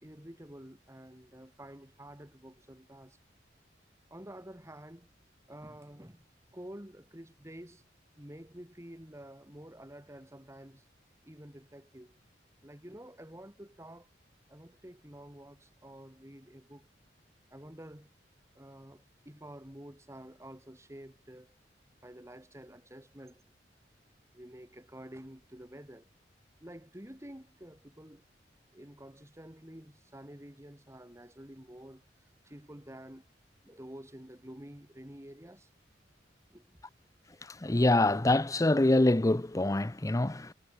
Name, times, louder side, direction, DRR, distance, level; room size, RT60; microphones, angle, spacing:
voice 1, 0.0-3.2 4.1-5.1 5.5-6.2 6.5-7.8 8.2-10.8 11.2-12.2 12.6-14.1 14.5-16.9 17.5-18.1 18.5-21.6 22.0-23.4 24.3-26.1 26.6-28.2 28.7-32.1 32.4-33.3 33.6-35.7 36.5-36.8, right 1 dB, 15° right, 2.6 m, -49 dB
voice 2, 37.6-40.5, left 2 dB, 20° left, 0.6 m, -25 dB
head